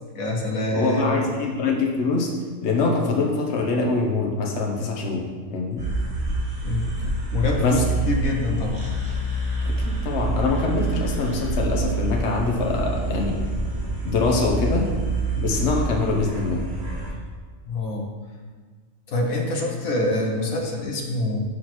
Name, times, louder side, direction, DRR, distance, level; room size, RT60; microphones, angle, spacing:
voice 1, 0.1-1.2 6.6-6.9 7.3-8.9 17.6-18.1 19.1-21.4, left 2 dB, 85° left, 0 dB, 1.5 m, -25 dB
voice 2, 0.7-2.3 2.6-5.2 5.5-5.8 7.6-7.8 9.6-13.4 14.0-14.9 15.3-16.7, left 3 dB, 55° left, 0 dB, 1.3 m, -24 dB
sound 1, 5.8-17.1, right 2 dB, 85° right, 3.1 m, -27 dB
8.1 x 6.3 x 4.4 m, 1.5 s
omnidirectional pair, 1.4 m